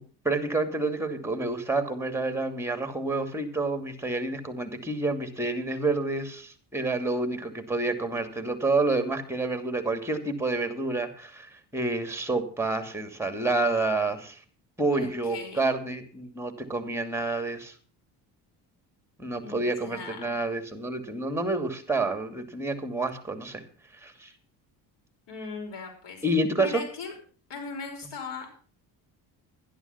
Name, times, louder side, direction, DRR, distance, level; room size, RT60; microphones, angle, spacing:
voice 1, 0.2-14.4 14.8-17.7 19.2-23.6 24.0-24.3 26.2-26.8, right 2 dB, 5° right, 9 dB, 2.6 m, -29 dB
voice 2, 14.9-15.7 19.4-20.4 25.3-26.2 26.6-27.1 27.5-28.5, left 4 dB, 60° left, 2 dB, 5.6 m, -39 dB
12.0 x 11.0 x 5.8 m, 0.41 s
supercardioid pair, 75°, 46 cm